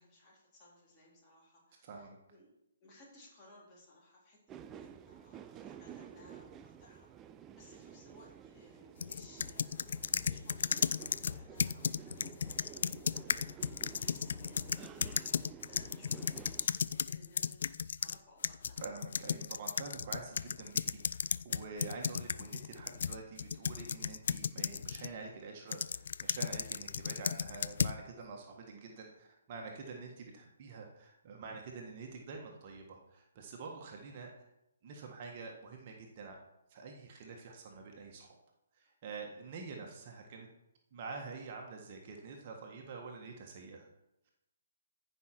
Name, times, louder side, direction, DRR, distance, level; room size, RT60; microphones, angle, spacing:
voice 1, 0.0-2.5 2.8-4.4 4.7-7.1 7.4-13.4 13.7-17.6 18.0-18.9 39.3-39.5, left 1 dB, 25° left, -4 dB, 3.9 m, -60 dB
voice 2, 1.8-2.2 18.8-21.0 21.4-34.5 34.8-36.4 36.7-38.4 38.7-40.5 40.9-43.9, right 4 dB, 40° right, 1 dB, 1.6 m, -47 dB
sound 1, 4.5-16.7, right 9 dB, 20° right, 0.5 m, -52 dB
sound 2, 9.0-18.2 18.4-25.1 25.7-28.0, left 7 dB, 55° left, 0.3 m, -35 dB
14.5 x 5.7 x 4.6 m, 0.86 s
figure-of-eight pair, 135°, 0 cm